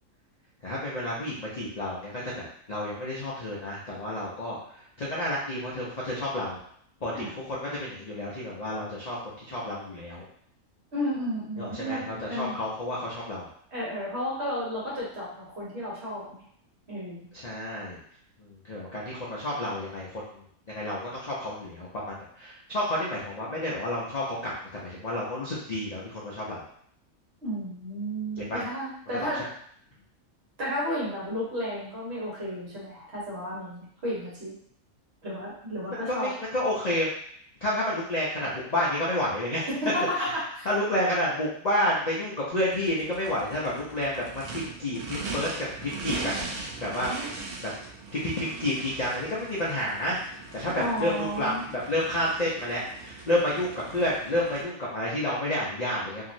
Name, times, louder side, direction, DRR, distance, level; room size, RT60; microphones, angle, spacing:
voice 1, 0.6-6.6 7.0-10.2 11.6-13.5 17.3-18.0 18.4-26.6 28.4-28.6 29.1-29.5 35.9-37.1 37.6-39.7 40.1-47.1 47.6-47.7 48.1-50.2 50.5-56.3, left 1 dB, 50° left, -6 dB, 0.5 m, -30 dB
voice 2, 10.9-12.6 13.7-16.4 16.9-17.3 27.4-29.4 30.6-34.5 35.2-36.3 39.7-40.7 50.7-51.6, equal, 50° right, -7 dB, 1.4 m, -32 dB
Race car auto racing / Idling / Accelerating revving vroom, 42.6-54.6, right 3 dB, 85° right, 1.2 m, -40 dB
2.9 x 2.8 x 2.6 m, 0.64 s
omnidirectional pair, 1.5 m